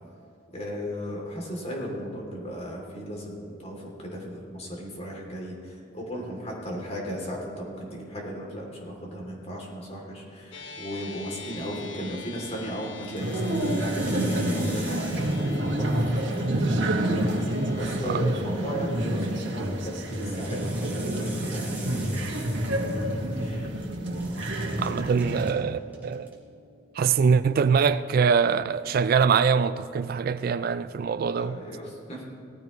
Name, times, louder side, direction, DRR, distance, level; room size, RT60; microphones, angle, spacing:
voice 1, 0.5-15.4 15.8-16.9 17.8-22.5 22.9-23.0 23.2-23.8 31.3-32.2, equal, 35° left, 2.8 m, -36 dB
sound 1, 10.5-29.1, left 4 dB, 85° left, 1.1 m, -48 dB
sound 2, 12.1-12.5 13.0-15.7 16.0-17.8 19.0-23.5 23.8-25.5 25.9-26.3, right 3 dB, 10° right, 2.2 m, -45 dB
sound 3, 13.2-25.5, right 1 dB, 75° right, 1.7 m, -28 dB
voice 2, 24.8-26.4 26.9-31.6, right 6 dB, 50° right, 0.3 m, -23 dB
18.0 x 14.0 x 3.1 m
head